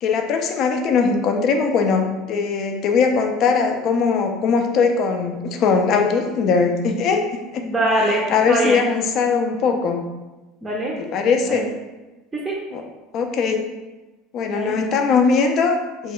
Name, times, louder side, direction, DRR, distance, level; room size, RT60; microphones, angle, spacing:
voice 1, 0.0-7.2 7.5-7.6 8.0-10.0 11.0-11.7 12.7-12.8 13.1-13.7 14.3-16.1, left 5 dB, 50° left, 4 dB, 0.4 m, -20 dB
voice 2, 7.6-8.2 8.5-8.8 10.6-11.0 11.5-11.6 12.3-12.6 14.5-14.7, right 1 dB, 15° right, -4 dB, 0.5 m, -22 dB
3.1 x 2.3 x 3.0 m, 1.1 s
supercardioid pair, 120°, 0 cm